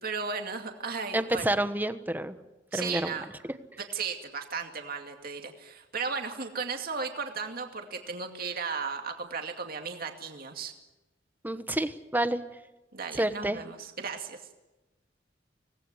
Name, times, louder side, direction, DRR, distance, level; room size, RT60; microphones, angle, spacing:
voice 1, 0.0-1.5 2.7-3.3 3.9-10.7 12.9-14.4, right 5 dB, 50° right, 4 dB, 2.4 m, -35 dB
voice 2, 1.1-2.3 2.7-3.2 11.4-12.4 13.1-13.6, right 1 dB, 10° right, 10 dB, 1.2 m, -28 dB
25.0 x 19.0 x 9.8 m, 1.0 s
head